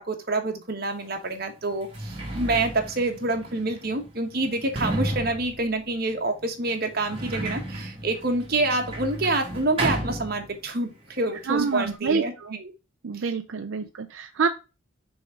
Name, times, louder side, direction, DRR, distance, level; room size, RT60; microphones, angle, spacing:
voice 1, 0.0-12.3 12.6-12.7 13.1-13.2, right 2 dB, 50° right, 5 dB, 1.2 m, -27 dB
Sliding door, 1.0-1.1 1.7-10.9 11.1-12.0, right 1 dB, 30° right, 1.9 m, -34 dB
voice 2, 11.4-12.6 13.0-14.5, right 5 dB, 75° right, 7 dB, 0.5 m, -27 dB
6.1 x 3.6 x 4.9 m, 0.29 s
head